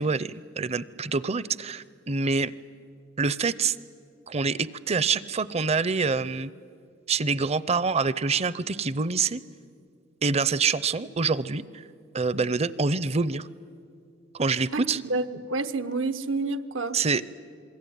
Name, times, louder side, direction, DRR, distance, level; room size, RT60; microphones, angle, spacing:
voice 1, 0.0-2.5 3.2-3.8 4.3-6.5 7.1-9.4 10.2-11.6 12.1-13.5 14.3-15.0 16.9-17.2, right 4 dB, 35° right, 18 dB, 0.6 m, -26 dB
voice 2, 15.1-17.0, right 3 dB, 80° right, 11 dB, 1.1 m, -29 dB
27.0 x 22.0 x 9.4 m, 2.3 s
head